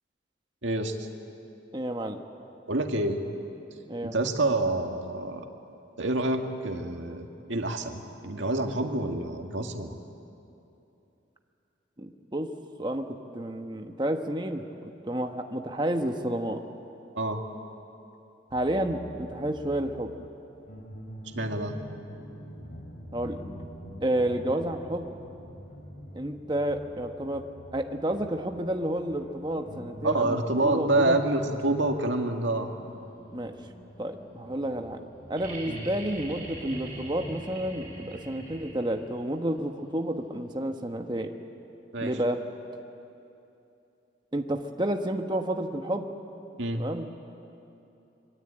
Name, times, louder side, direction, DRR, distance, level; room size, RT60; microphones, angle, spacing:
voice 1, 0.6-1.1 2.7-3.2 4.0-5.5 6.0-10.0 17.1-17.4 21.3-21.8 30.0-32.7 35.7-35.8 41.9-42.1 46.6-46.8, right 2 dB, 85° right, 4 dB, 2.1 m, -27 dB
voice 2, 1.7-2.2 3.9-4.1 12.0-12.5 12.8-14.6 15.0-16.6 18.5-20.1 23.1-23.4 24.0-25.1 26.1-27.5 27.7-31.2 33.3-33.5 34.0-35.0 35.3-41.3 42.0-42.4 44.3-46.1 46.7-47.1, right 1 dB, 25° right, 5 dB, 1.2 m, -30 dB
sound 1, 18.5-37.4, equal, 45° left, 3.4 m, -45 dB
sound 2, 35.4-39.1 40.8-40.9, right 2 dB, 45° right, 7.3 m, -43 dB
26.0 x 22.5 x 8.9 m, 2.8 s
head